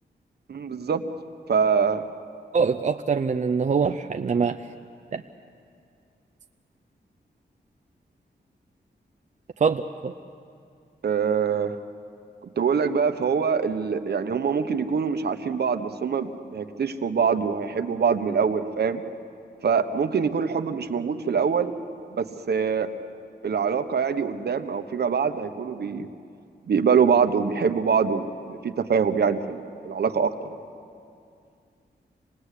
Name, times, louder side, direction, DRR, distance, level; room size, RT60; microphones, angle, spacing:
voice 1, 0.5-1.0 1.5-2.0 11.0-11.8 12.6-19.0 19.6-21.7 22.2-22.9 23.4-26.1 26.7-30.3, right 6 dB, 65° right, 8 dB, 1.2 m, -24 dB
voice 2, 2.5-4.6 5.1-5.2 9.6-10.1, right 5 dB, 40° right, 5 dB, 0.6 m, -24 dB
27.0 x 19.5 x 8.4 m, 2.4 s
wide cardioid pair, 140°, 18 cm